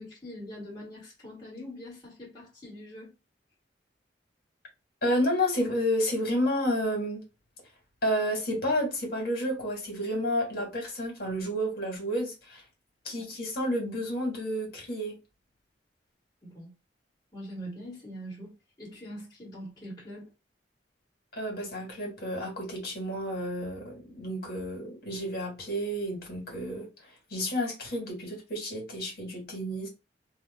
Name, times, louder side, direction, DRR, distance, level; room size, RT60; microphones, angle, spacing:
voice 1, 0.0-3.1 13.1-13.3 16.4-16.7 17.3-20.3, equal, 20° left, 1.6 m, -43 dB
voice 2, 5.0-7.2 8.0-12.6 13.0-15.1 21.4-26.9 27.3-29.9, equal, 60° left, 1.5 m, -30 dB
2.8 x 2.1 x 3.4 m
head